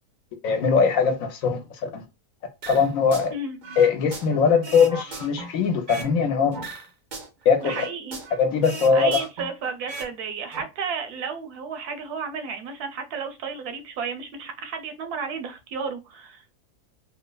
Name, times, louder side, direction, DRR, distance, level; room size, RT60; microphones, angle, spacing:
voice 1, 0.4-2.0 2.7-3.3 3.8-6.6 7.4-7.8 8.4-9.2, left 5 dB, 70° left, 1.0 m, -21 dB
sound 1, 2.6-3.3 3.6-6.2 6.5-8.4 8.6-10.1 10.4-10.6, right 3 dB, 60° right, 0.5 m, -37 dB
voice 2, 7.6-8.2 8.9-16.4, right 5 dB, 85° right, 1.2 m, -32 dB
3.1 x 2.0 x 2.2 m
omnidirectional pair, 1.6 m